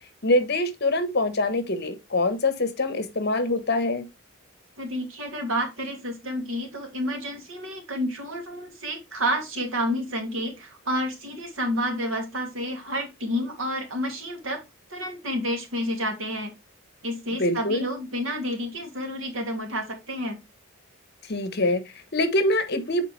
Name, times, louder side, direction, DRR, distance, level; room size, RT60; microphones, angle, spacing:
voice 1, 0.2-4.1 17.4-17.9 21.2-23.0, left 2 dB, 50° left, 1.2 m, -24 dB
voice 2, 4.8-14.6 14.9-16.5 17.0-20.4, equal, 75° right, 2.5 m, -30 dB
7.4 x 4.8 x 3.2 m
head